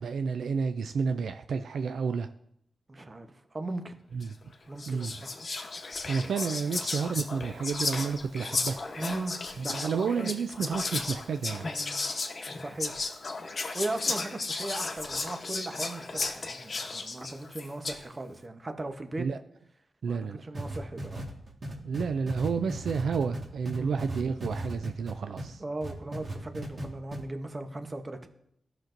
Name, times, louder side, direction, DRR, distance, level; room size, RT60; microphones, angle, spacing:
voice 1, 0.0-2.3 4.1-4.3 4.9-5.1 6.1-8.9 9.6-11.7 19.2-19.4 20.0-20.4 21.8-25.6, right 5 dB, 85° right, 9 dB, 0.3 m, -30 dB
voice 2, 2.9-3.9 4.7-5.3 9.0-10.3 11.6-12.0 12.5-13.0 13.7-19.3 20.0-21.2 23.8-24.0 25.6-28.3, right 2 dB, 35° right, 7 dB, 0.9 m, -38 dB
Whispering, 4.2-4.4 4.8-18.1, left 3 dB, 55° left, 0.9 m, -34 dB
sound 1, 20.5-25.5 25.8-26.8 27.1-27.2, right 2 dB, 55° right, 1.6 m, -36 dB
13.0 x 5.9 x 2.6 m, 0.74 s
cardioid pair, 60°, 0 cm